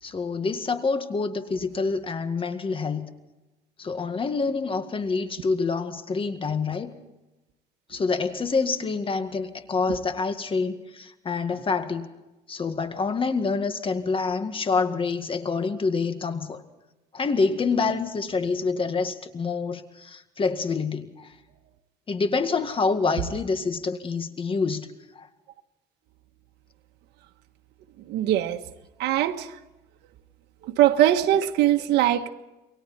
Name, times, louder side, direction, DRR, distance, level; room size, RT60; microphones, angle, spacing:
voice 1, 0.0-3.1 3.8-6.9 7.9-12.1 12.5-16.6 17.1-21.4 22.1-24.9 25.1-25.3, left 4 dB, 30° left, 2.0 m, -27 dB
voice 2, 28.1-28.6 29.0-29.6 30.6-32.3, right 12 dB, 85° right, 1.4 m, -21 dB
28.5 x 23.5 x 4.3 m
cardioid pair, 110°, 17 cm